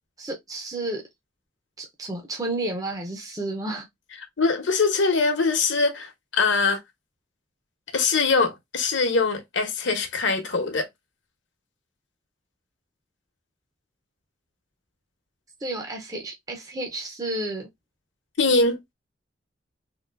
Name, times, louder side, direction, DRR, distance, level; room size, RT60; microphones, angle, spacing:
voice 1, 0.2-1.0 1.8-3.9 15.6-17.7, right 2 dB, 20° right, 0.6 m, -31 dB
voice 2, 4.4-6.8 7.9-10.9 18.4-18.8, left 4 dB, 70° left, 1.0 m, -22 dB
3.7 x 2.6 x 2.4 m
head